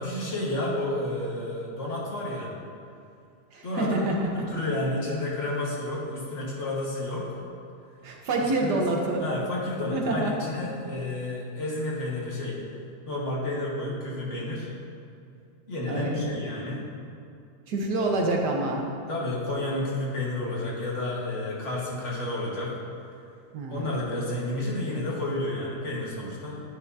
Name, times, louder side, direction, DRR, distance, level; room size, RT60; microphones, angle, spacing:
voice 1, 0.0-2.5 3.6-4.0 4.3-7.4 8.4-8.9 9.2-12.6 13.1-14.7 15.7-16.9 18.0-18.1 19.1-22.7 23.7-26.6, left 1 dB, 45° left, -5 dB, 1.8 m, -31 dB
voice 2, 3.5-4.4 8.0-9.2 9.9-10.4 15.9-16.4 17.7-18.8 23.5-23.9, right 2 dB, 75° right, 0 dB, 1.6 m, -27 dB
10.5 x 8.7 x 2.7 m, 2.4 s
omnidirectional pair, 1.8 m